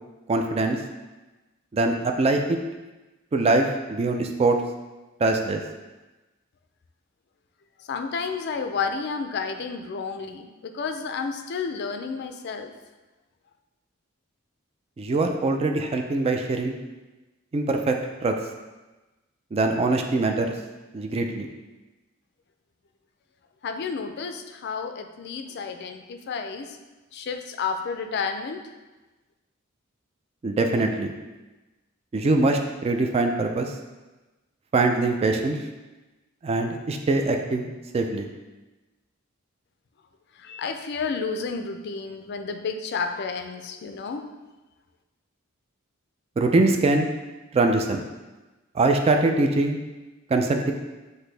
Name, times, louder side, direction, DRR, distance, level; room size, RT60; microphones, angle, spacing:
voice 1, 0.3-0.8 1.7-2.6 3.3-4.6 5.2-5.6 15.0-16.8 17.5-18.0 18.2-18.3 19.5-20.5 20.9-21.5 30.4-31.1 32.1-33.7 34.7-35.6 36.4-38.3 46.4-47.1 47.5-48.0 48.8-49.8 50.3-50.7, right 2 dB, 30° right, 4 dB, 0.3 m, -23 dB
voice 2, 7.8-12.7 23.6-26.8 27.1-28.6 40.4-44.3, left 5 dB, 55° left, 7 dB, 0.4 m, -31 dB
6.0 x 2.7 x 3.2 m, 1.1 s
head